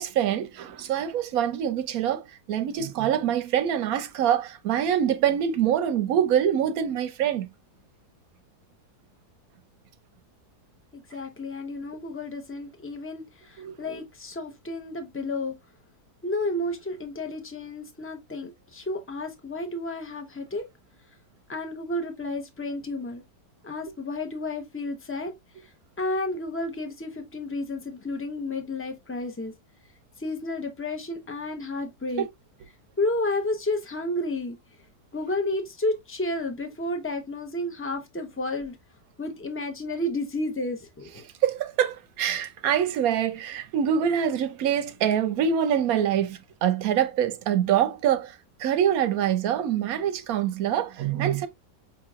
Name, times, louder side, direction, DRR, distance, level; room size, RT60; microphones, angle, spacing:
voice 1, 0.0-7.5 13.6-13.7 32.2-32.3 41.4-51.5, right 9 dB, 70° right, 1.0 m, -25 dB
voice 2, 10.9-15.5 16.2-20.6 21.5-23.2 23.6-25.3 26.0-29.5 30.2-32.3 33.0-34.6 35.1-38.7 39.2-41.3, left 2 dB, 15° left, 0.5 m, -31 dB
5.7 x 2.9 x 2.4 m
omnidirectional pair, 1.7 m